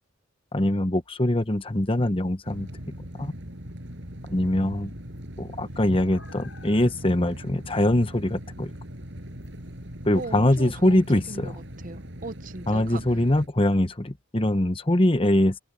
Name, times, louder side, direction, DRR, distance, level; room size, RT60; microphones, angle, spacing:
voice 1, 0.5-2.7 3.1-3.3 4.3-4.9 5.4-8.7 10.0-11.5 12.7-15.6, left 1 dB, 25° left, 1.1 m, -23 dB
sound 1, 1.4-12.1, left 1 dB, 65° left, 7.0 m, -52 dB
sound 2, 2.4-13.5, equal, 60° right, 6.8 m, -40 dB
voice 2, 10.1-13.0, right 2 dB, 40° right, 1.0 m, -39 dB
open air
head